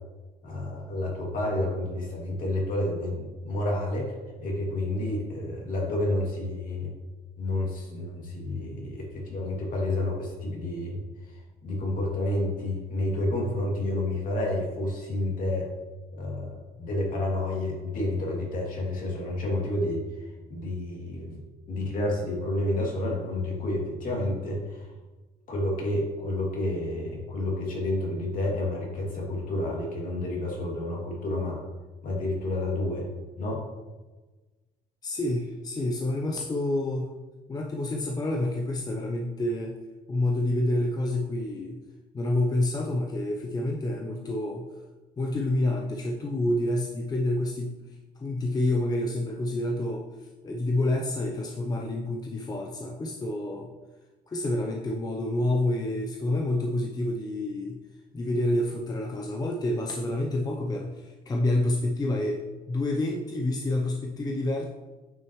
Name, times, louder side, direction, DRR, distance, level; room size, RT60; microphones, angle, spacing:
voice 1, 0.4-6.9 7.4-11.0 11.3-15.7 16.1-21.4 21.7-24.9 25.5-31.6 32.0-33.1 33.4-33.6, left 1 dB, 55° left, -2 dB, 2.6 m, -30 dB
voice 2, 35.0-37.1 37.5-39.8 40.1-41.8 42.1-44.7 45.2-47.8 48.2-53.7 54.3-57.8 58.1-64.6, left 1 dB, 25° left, 1 dB, 0.7 m, -28 dB
9.1 x 6.1 x 3.1 m, 1.2 s
cardioid pair, 110°, 17 cm